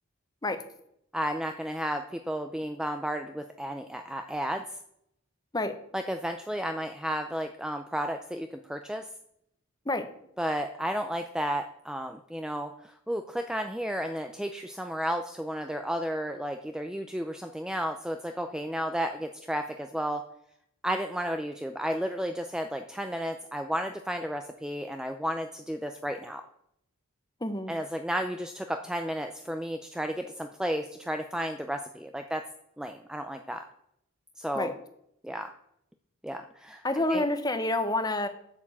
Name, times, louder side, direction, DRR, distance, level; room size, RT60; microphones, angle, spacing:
voice 1, 1.1-4.6 5.9-9.1 10.4-20.2 20.8-26.4 27.7-32.4 32.8-33.6 34.4-34.7 35.2-35.5 36.2-36.8 37.1-37.2, equal, 5° right, 6 dB, 0.4 m, -33 dB
voice 2, 27.4-27.7 34.5-34.7 36.8-38.3, left 2 dB, 20° left, 9 dB, 0.8 m, -28 dB
8.7 x 7.0 x 7.2 m, 0.74 s
head